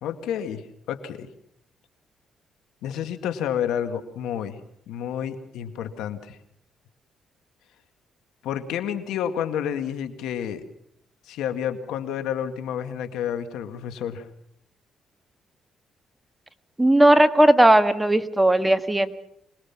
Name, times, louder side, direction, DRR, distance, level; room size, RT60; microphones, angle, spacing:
voice 1, 0.0-1.3 2.8-4.6 4.9-6.4 8.4-10.6 11.3-14.3, left 9 dB, 90° left, 8 dB, 2.0 m, -30 dB
voice 2, 16.8-19.1, right 1 dB, 10° right, 9 dB, 1.5 m, -17 dB
26.0 x 20.0 x 6.0 m, 0.74 s
cardioid pair, 90°, 0 cm